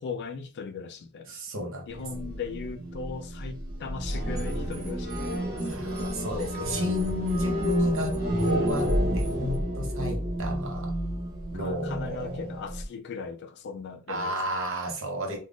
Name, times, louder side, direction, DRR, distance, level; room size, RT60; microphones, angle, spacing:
voice 1, 0.0-1.3 1.9-5.8 6.4-6.9 10.0-10.2 11.5-14.3, left 5 dB, 50° left, 0.3 m, -38 dB
voice 2, 1.3-1.9 5.6-8.1 8.4-10.9 11.5-12.4 14.1-15.4, equal, 60° right, 0.8 m, -31 dB
sound 1, 1.9-12.9, equal, 45° right, 1.5 m, -31 dB
sound 2, 4.1-9.6, equal, 15° right, 0.9 m, -43 dB
2.4 x 2.3 x 3.4 m
head